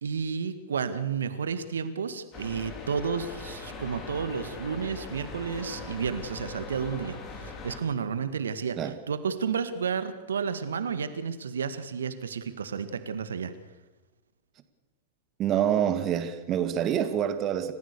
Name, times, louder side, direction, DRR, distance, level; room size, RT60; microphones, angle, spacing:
voice 1, 0.0-13.5, right 6 dB, 75° right, 1.8 m, -31 dB
sound 1, 2.3-7.8, left 4 dB, 35° left, 4.5 m, -41 dB
voice 2, 15.4-17.7, right 10 dB, 35° right, 2.2 m, -26 dB
28.5 x 15.0 x 6.9 m
figure-of-eight pair, 100°, 0 cm